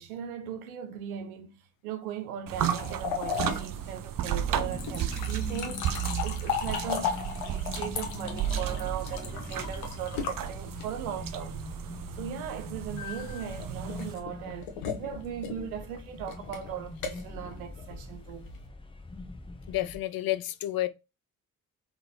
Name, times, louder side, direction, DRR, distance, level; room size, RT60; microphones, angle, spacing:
voice 1, 0.0-5.9 6.2-11.6 12.2-14.7 15.0-18.5, right 9 dB, 85° right, 0.7 m, -38 dB
sound 1, 2.5-14.2, right 10 dB, 50° right, 0.7 m, -34 dB
sound 2, 2.6-11.2 13.0-18.7, left 7 dB, 80° left, 1.0 m, -36 dB
sound 3, 4.2-20.0, left 2 dB, 10° left, 1.0 m, -43 dB
voice 2, 19.7-20.9, left 15 dB, 55° left, 0.7 m, -30 dB
4.0 x 3.8 x 2.8 m
hypercardioid pair, 40°, 42 cm